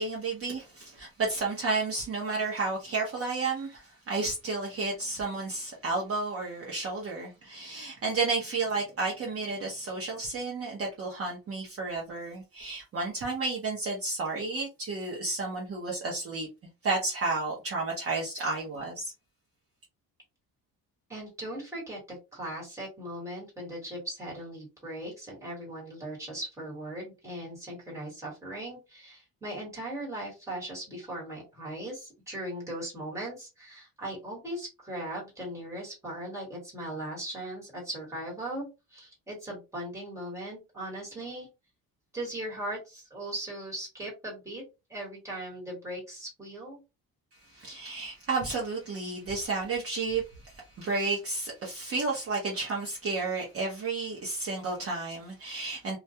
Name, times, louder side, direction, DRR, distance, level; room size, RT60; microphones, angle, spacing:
voice 1, 0.0-16.5 16.8-19.1 47.3-56.0, right 3 dB, 40° right, 0.7 m, -32 dB
voice 2, 21.1-41.5 42.1-44.6 44.9-46.8, right 1 dB, 10° right, 1.3 m, -39 dB
2.2 x 2.2 x 2.7 m
cardioid pair, 165°, 37 cm